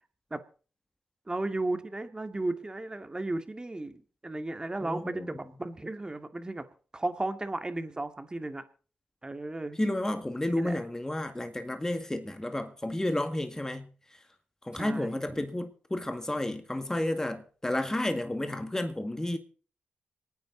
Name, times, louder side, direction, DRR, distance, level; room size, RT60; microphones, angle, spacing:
voice 1, 1.3-6.7 6.9-8.6 9.2-9.8 10.5-10.8 14.7-15.4, right 2 dB, 25° right, 2.2 m, -34 dB
voice 2, 4.8-5.4 9.8-14.2 14.6-19.4, left 1 dB, 15° left, 2.0 m, -31 dB
25.5 x 9.5 x 4.0 m
supercardioid pair, 50°, 3 cm